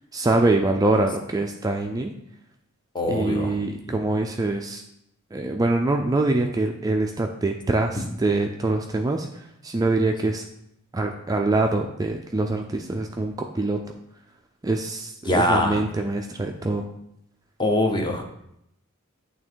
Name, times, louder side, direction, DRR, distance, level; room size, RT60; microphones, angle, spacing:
voice 1, 0.1-2.1 3.1-4.8 5.3-10.4 10.9-13.8 14.6-16.8, right 2 dB, 15° right, 3 dB, 0.4 m, -24 dB
voice 2, 2.9-3.5 8.0-8.1 15.2-15.9 17.6-18.2, left 1 dB, 20° left, 3 dB, 0.8 m, -23 dB
8.7 x 3.4 x 4.5 m, 0.77 s
head